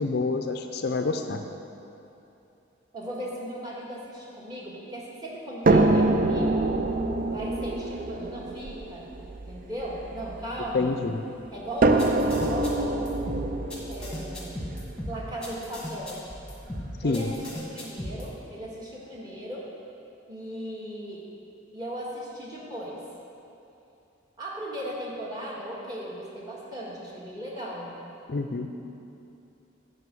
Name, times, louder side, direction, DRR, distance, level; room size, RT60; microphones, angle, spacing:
voice 1, 0.0-1.4 10.7-11.2 17.0-17.3 28.3-28.7, left 3 dB, 50° left, 6 dB, 0.4 m, -27 dB
voice 2, 2.9-6.7 7.3-9.1 9.5-11.0 11.5-14.7 15.1-16.2 17.0-19.7 20.3-21.2 21.7-23.0 24.4-27.9, equal, 20° right, -5 dB, 1.7 m, -37 dB
sound 1, 5.6-10.9 11.8-15.8 16.7-16.8 17.3-17.4, right 2 dB, 45° right, 0.5 m, -25 dB
sound 2, 12.0-18.3, equal, 5° left, 1.4 m, -37 dB
9.4 x 5.4 x 7.6 m, 2.8 s
head